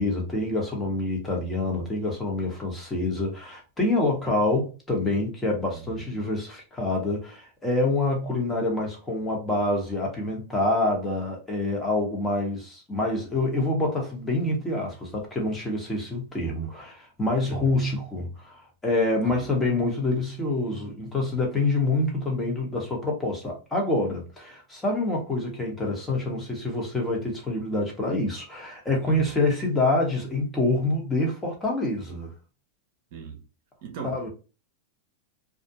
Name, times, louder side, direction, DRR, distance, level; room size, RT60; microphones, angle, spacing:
voice 1, 0.0-32.3 34.0-34.3, left 2 dB, 10° left, 0.9 m, -26 dB
voice 2, 5.7-6.2 17.5-17.6 19.2-19.4 29.0-29.2 33.1-33.4 33.8-34.2, right 6 dB, 60° right, 0.7 m, -39 dB
2.3 x 2.1 x 2.7 m
supercardioid pair, 135°, 0 cm